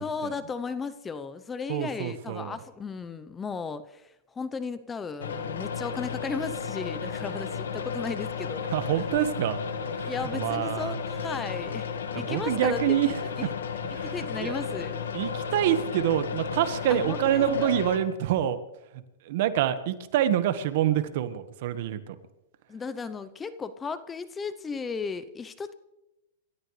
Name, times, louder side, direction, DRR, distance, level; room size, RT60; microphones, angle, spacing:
voice 1, 0.0-8.7 10.0-13.5 14.0-15.0 16.9-17.8 22.7-25.7, left 5 dB, 15° left, 13 dB, 0.7 m, -35 dB
voice 2, 1.7-2.6 8.7-9.6 9.9-11.0 12.1-13.2 13.9-14.1 14.4-14.5 15.1-18.6 19.2-22.2, right 11 dB, 55° right, 11 dB, 1.4 m, -26 dB
sound 1, 5.2-18.0, left 6 dB, 90° left, 1.8 m, -33 dB
28.5 x 13.5 x 3.3 m, 0.93 s
hypercardioid pair, 135°, 0 cm